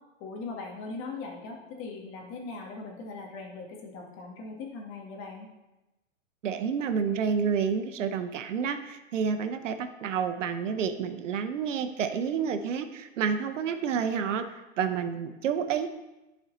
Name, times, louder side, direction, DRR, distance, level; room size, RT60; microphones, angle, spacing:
voice 1, 0.2-5.5, left 3 dB, 35° left, 0 dB, 1.7 m, -40 dB
voice 2, 6.4-15.9, right 6 dB, 70° right, 9 dB, 0.8 m, -29 dB
11.0 x 4.4 x 3.9 m, 1.0 s
hypercardioid pair, 130°, 38 cm